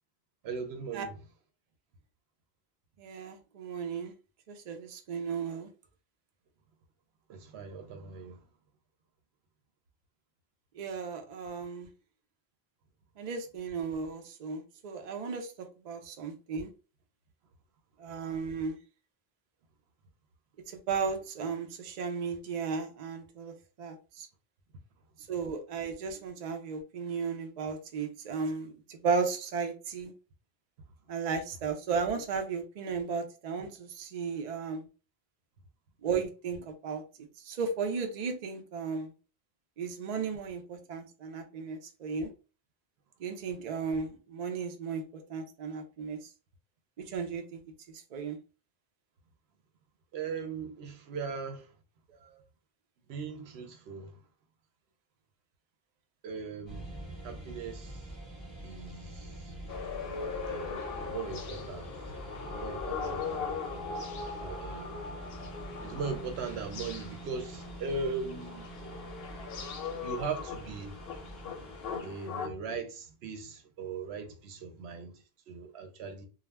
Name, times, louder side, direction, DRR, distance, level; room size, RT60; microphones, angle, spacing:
voice 1, 0.4-1.2 7.3-8.5 50.1-51.7 53.1-54.2 56.2-57.0 57.2-58.2 58.6-59.5 60.5-61.9 62.4-63.6 64.4-64.9 65.8-68.7 70.0-71.0 72.0-76.3, right 4 dB, 80° right, 0.9 m, -39 dB
voice 2, 3.0-4.1 4.5-5.7 10.7-11.9 13.2-16.7 18.0-18.8 20.7-24.3 25.3-30.1 31.1-34.9 36.0-37.0 37.4-39.1 39.8-42.3 43.2-46.3 47.0-47.6 47.9-48.4 52.3-52.4, right 5 dB, 55° right, 0.5 m, -35 dB
sound 1, 56.7-72.0, right 1 dB, ahead, 1.0 m, -45 dB
sound 2, 59.7-72.5, left 5 dB, 70° left, 0.7 m, -39 dB
2.3 x 2.0 x 3.2 m
omnidirectional pair, 1.1 m